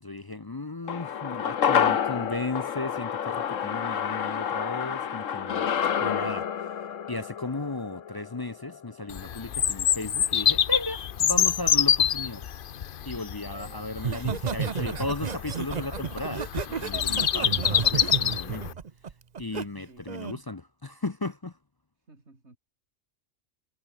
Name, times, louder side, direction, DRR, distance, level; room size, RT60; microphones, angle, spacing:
voice 1, 0.0-5.7 6.0-6.5 7.1-12.5 13.0-18.7 19.4-21.5, left 2 dB, 30° left, 0.5 m, -35 dB
sound 1, 0.9-9.4 9.7-9.8, left 8 dB, 80° left, 1.5 m, -29 dB
voice 2, 5.6-6.0 13.4-13.9 19.9-20.6 22.1-22.6, right 2 dB, 60° right, 4.7 m, -54 dB
Bird vocalization bird call bird song, 9.1-18.7, left 9 dB, 50° left, 0.8 m, -26 dB
Laughter, 14.0-19.6 20.1-20.4, right 6 dB, 40° right, 0.8 m, -32 dB
omnidirectional pair, 1.3 m